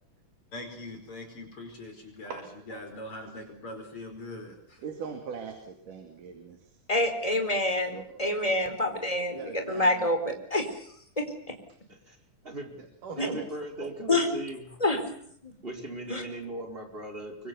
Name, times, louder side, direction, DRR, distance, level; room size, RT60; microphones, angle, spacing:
voice 1, 0.5-4.6, left 1 dB, 45° left, 5 dB, 5.7 m, -42 dB
voice 2, 4.8-6.7 7.9-8.3 9.3-10.1 13.0-13.5 13.8-13.9, right 5 dB, 85° right, 5 dB, 4.0 m, -40 dB
voice 3, 6.9-10.7 11.2-11.3 13.2-13.3 14.1-14.3 14.8-15.5 16.1-16.2, left 1 dB, 10° left, 5 dB, 4.3 m, -27 dB
voice 4, 12.4-12.8 13.1-14.7 15.6-17.5, right 1 dB, 15° right, 2 dB, 4.9 m, -38 dB
25.0 x 25.0 x 7.1 m, 0.64 s
omnidirectional pair, 3.6 m